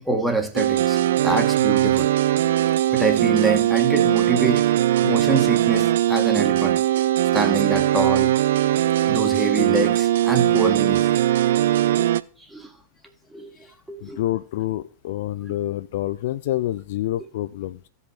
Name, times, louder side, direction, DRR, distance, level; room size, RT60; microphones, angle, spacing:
voice 1, 0.0-2.1 2.9-6.8 7.3-8.3 9.1-11.1 11.9-12.1 12.5-12.7 13.3-13.5 13.9-14.2, right 3 dB, 5° right, 4 dB, 1.6 m, -25 dB
sound 1, 0.6-12.2, right 13 dB, 60° right, 0.4 m, -20 dB
voice 2, 14.0-17.9, left 14 dB, 55° left, 12 dB, 0.4 m, -27 dB
15.5 x 5.4 x 4.3 m, 0.42 s
figure-of-eight pair, 90°, 0 cm